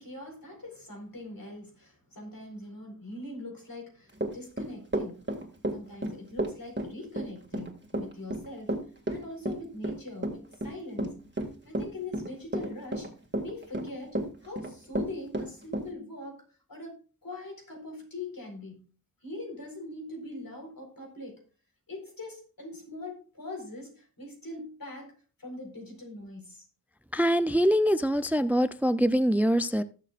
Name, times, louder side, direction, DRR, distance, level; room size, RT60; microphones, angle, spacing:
voice 1, 0.0-5.3 5.7-8.8 9.1-11.3 11.6-13.1 13.4-18.9 19.2-21.4 21.9-25.1 25.4-26.7, left 2 dB, 70° left, 4.3 m, -42 dB
Run / Walk footsteps, 4.2-15.9, right 1 dB, 30° right, 2.1 m, -31 dB
voice 2, 27.1-29.8, equal, 5° right, 0.4 m, -24 dB
19.5 x 6.7 x 2.4 m
wide cardioid pair, 50°, 36 cm